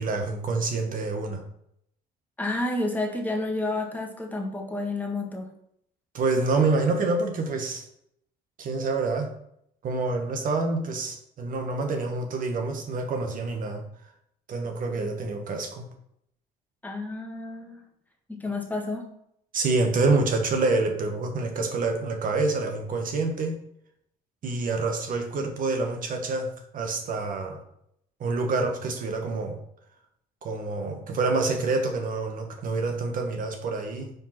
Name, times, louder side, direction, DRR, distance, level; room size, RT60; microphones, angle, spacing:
voice 1, 0.0-1.4 6.1-7.9 8.6-9.3 9.8-13.8 14.5-15.8 19.5-23.6 24.4-27.6 28.2-29.6 30.4-34.1, right 3 dB, 55° right, 4 dB, 1.5 m, -27 dB
voice 2, 2.4-5.5 16.8-17.8 18.3-19.1, left 2 dB, 10° left, 0 dB, 1.6 m, -30 dB
5.3 x 4.6 x 5.9 m, 0.73 s
cardioid pair, 110°, 17 cm